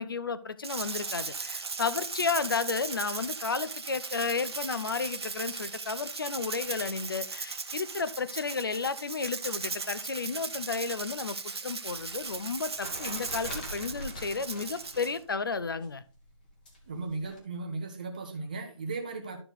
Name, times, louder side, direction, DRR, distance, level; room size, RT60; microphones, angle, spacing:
voice 1, 0.0-16.0, left 5 dB, 45° left, 0.6 m, -32 dB
Rattle (instrument), 0.6-15.2, right 4 dB, 55° right, 0.9 m, -38 dB
sound 1, 11.9-15.2 15.5-17.4, equal, 15° left, 1.1 m, -44 dB
voice 2, 16.9-19.4, right 3 dB, 15° right, 0.7 m, -36 dB
11.5 x 4.6 x 3.9 m
hypercardioid pair, 175°, 16 cm